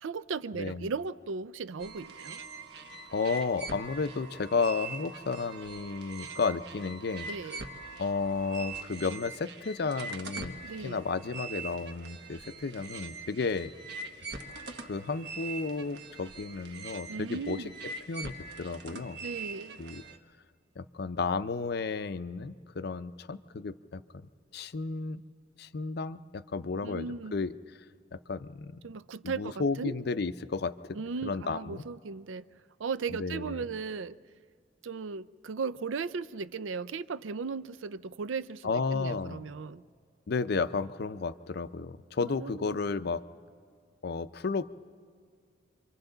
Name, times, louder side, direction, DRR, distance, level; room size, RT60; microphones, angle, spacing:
voice 1, 0.0-2.4 7.3-7.6 10.6-11.0 17.1-17.7 19.2-19.8 26.8-27.4 28.8-29.9 30.9-32.5 32.8-34.2 34.8-39.8 42.2-42.8, right 5 dB, 85° right, 0.5 m, -37 dB
voice 2, 0.5-0.9 3.1-7.3 8.0-10.6 10.8-13.7 14.8-19.2 19.8-20.0 20.8-25.2 25.6-27.6 28.1-28.8 29.2-31.9 33.1-33.6 38.6-39.4 40.3-43.2 44.0-44.6, left 4 dB, 55° left, 0.5 m, -33 dB
sound 1, 1.8-20.2, right 3 dB, 60° right, 1.2 m, -43 dB
28.5 x 24.5 x 3.9 m
head